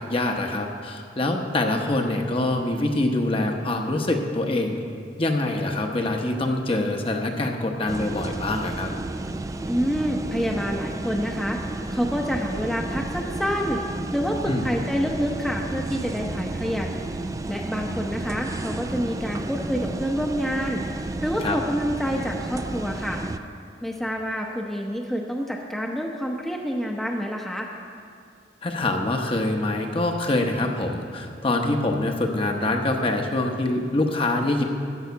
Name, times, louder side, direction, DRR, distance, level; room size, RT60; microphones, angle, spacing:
voice 1, 0.0-4.8 5.2-8.9 14.5-14.6 21.4-21.6 28.6-34.6, left 2 dB, 30° left, 3 dB, 0.9 m, -25 dB
sound 1, 7.9-23.4, right 2 dB, 20° right, 0.3 m, -32 dB
voice 2, 9.7-11.6 11.9-13.8 14.1-16.9 17.5-20.8 21.2-23.2 23.8-27.7, equal, ahead, 0 dB, 0.7 m, -27 dB
14.0 x 5.6 x 9.3 m, 2.3 s
head